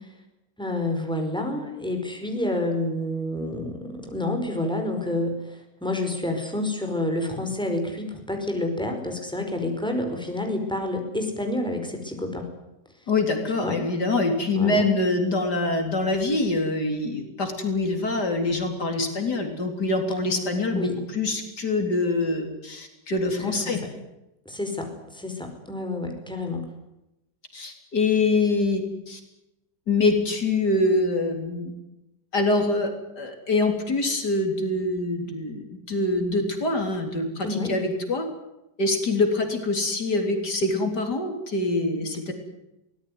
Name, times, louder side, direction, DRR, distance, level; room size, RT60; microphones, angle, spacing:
voice 1, 0.6-12.5 13.6-13.8 14.5-14.9 20.7-21.0 23.5-23.8 24.5-26.6 37.4-37.8, left 1 dB, 5° left, 4 dB, 5.2 m, -29 dB
voice 2, 13.1-23.8 27.5-29.2 29.9-31.7 32.3-32.9 33.2-38.3 38.8-42.3, left 2 dB, 75° left, 5 dB, 4.3 m, -25 dB
23.5 x 18.5 x 9.5 m, 0.92 s
omnidirectional pair, 1.8 m